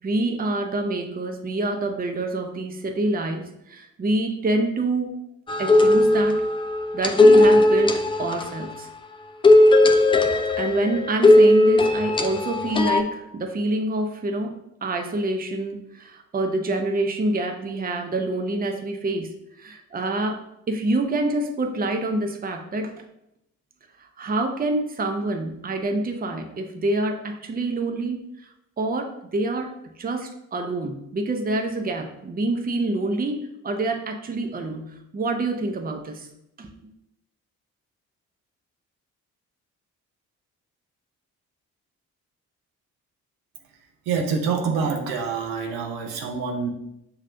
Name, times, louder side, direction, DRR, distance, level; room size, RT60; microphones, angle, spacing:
voice 1, 0.0-5.2 5.6-6.4 6.9-8.9 10.6-22.9 24.0-28.5 28.8-36.3 36.6-36.7, right 2 dB, 20° right, 4 dB, 0.7 m, -27 dB
sound 1, 5.5-8.7 9.4-13.0, left 2 dB, 15° left, 0.3 m, -17 dB
voice 2, 44.1-46.7, right 5 dB, 70° right, 1 dB, 0.8 m, -26 dB
6.4 x 3.1 x 2.6 m, 0.81 s
figure-of-eight pair, 40°, 42 cm